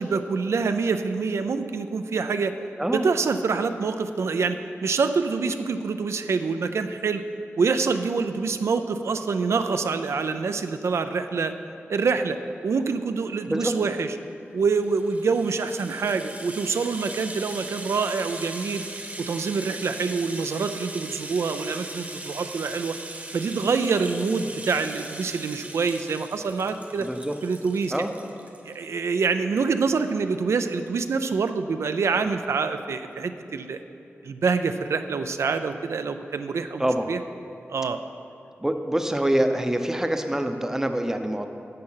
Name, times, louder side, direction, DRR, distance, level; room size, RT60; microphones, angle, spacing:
voice 1, 0.0-2.5 2.9-7.2 7.6-11.5 11.9-12.4 12.6-14.1 14.5-18.8 19.2-22.9 23.3-27.1 27.4-27.9 28.7-33.8 34.2-37.2 37.7-38.0, right 4 dB, 85° right, 9 dB, 0.4 m, -26 dB
Rattle (instrument), 14.7-28.8 29.2-29.3 29.6-29.7, right 2 dB, 35° right, 1.0 m, -39 dB
voice 2, 27.0-27.3 27.9-28.1 36.8-37.1 38.6-41.5, right 1 dB, 10° right, 6 dB, 0.6 m, -25 dB
10.5 x 6.6 x 5.6 m, 2.7 s
wide cardioid pair, 100°, 5 cm